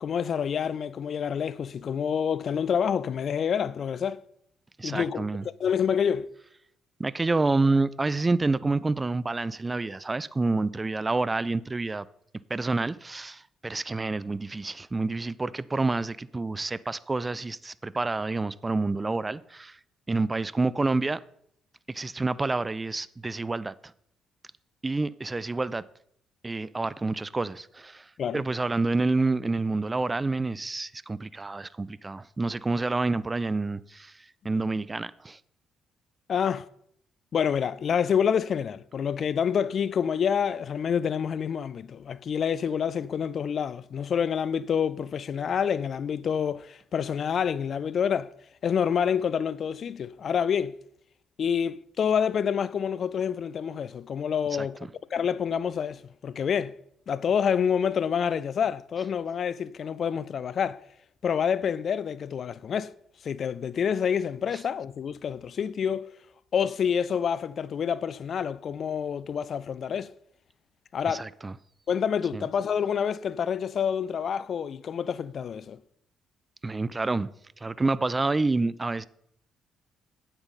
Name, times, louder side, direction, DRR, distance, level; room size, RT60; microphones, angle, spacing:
voice 1, 0.0-4.2 4.8-5.2 5.6-6.3 28.2-28.4 36.3-36.7 37.3-48.3 48.6-50.8 51.4-54.8 55.1-56.8 57.1-60.8 61.2-62.9 63.2-66.1 66.5-70.1 70.9-71.3 71.9-75.8, left 7 dB, 55° left, 0.4 m, -27 dB
voice 2, 4.8-5.4 7.0-12.1 12.5-19.8 20.1-21.2 21.9-23.7 24.8-25.8 26.4-34.2 34.4-35.4 54.6-54.7 71.1-71.5 72.3-72.4 76.6-77.3 77.6-79.0, right 3 dB, 25° right, 0.4 m, -28 dB
8.8 x 8.8 x 4.1 m
hypercardioid pair, 45°, 0 cm